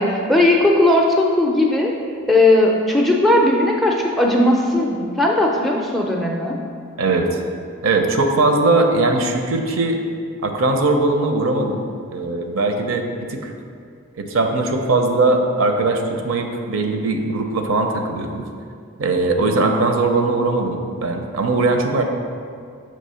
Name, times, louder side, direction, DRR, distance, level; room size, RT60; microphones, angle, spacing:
voice 1, 0.0-1.9 2.3-6.6, left 1 dB, ahead, -1 dB, 0.4 m, -17 dB
voice 2, 7.0-7.4 7.8-10.0 10.4-11.8 12.1-13.5 14.2-18.4 19.0-22.0, right 2 dB, 70° right, 4 dB, 0.6 m, -20 dB
6.6 x 3.2 x 5.5 m, 2.2 s
head